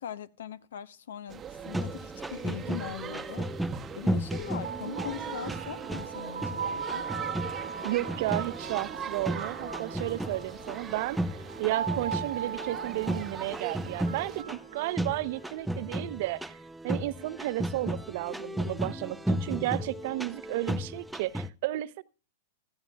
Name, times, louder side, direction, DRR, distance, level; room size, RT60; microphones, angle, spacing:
voice 1, 0.0-7.1, left 9 dB, 75° left, 0.8 m, -41 dB
sound 1, 1.3-14.4, right 8 dB, 25° right, 0.9 m, -41 dB
sound 2, 1.6-21.5, right 1 dB, 5° right, 0.5 m, -35 dB
sound 3, 4.4-15.5, right 7 dB, 90° right, 1.3 m, -39 dB
voice 2, 7.8-11.2 11.6-16.6 16.8-22.0, right 17 dB, 55° right, 0.6 m, -33 dB
15.5 x 14.5 x 2.3 m
hypercardioid pair, 120°, 0 cm